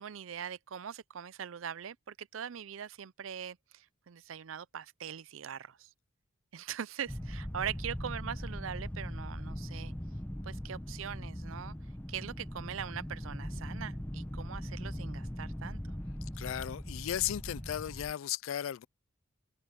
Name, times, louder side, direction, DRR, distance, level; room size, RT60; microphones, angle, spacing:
voice 1, 0.0-5.9 6.5-9.9 10.4-11.7 12.1-15.8, right 8 dB, 70° right, 0.5 m, -42 dB
sound 1, 7.1-18.1, equal, 10° left, 1.0 m, -40 dB
voice 2, 16.4-18.9, left 11 dB, 70° left, 0.3 m, -35 dB
head